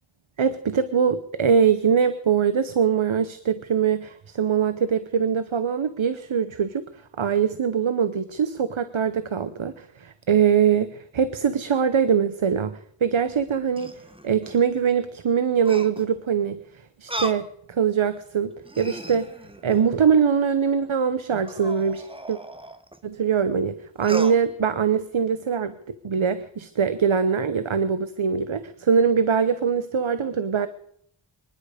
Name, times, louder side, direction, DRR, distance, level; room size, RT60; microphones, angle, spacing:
voice 1, 0.4-6.8 7.2-13.9 14.2-16.6 17.0-19.3 19.6-22.4 23.0-30.7, right 7 dB, 75° right, 12 dB, 0.9 m, -22 dB
sound 1, 13.3-14.6 15.6-16.2 17.1-17.5 18.1-18.2 18.6-20.0 21.4-23.0 24.0-24.4, right 1 dB, 10° right, 1.2 m, -36 dB
25.0 x 11.0 x 5.0 m, 0.69 s
wide cardioid pair, 50°, 49 cm